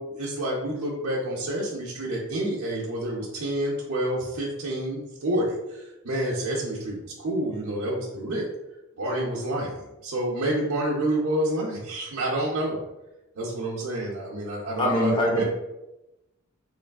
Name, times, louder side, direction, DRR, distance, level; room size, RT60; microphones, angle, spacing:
voice 1, 0.0-8.5 9.0-12.8 13.4-15.4, right 1 dB, 70° right, -7 dB, 0.6 m, -28 dB
voice 2, 14.8-15.4, left 1 dB, 20° left, -1 dB, 0.5 m, -23 dB
3.1 x 2.4 x 2.3 m, 0.96 s
head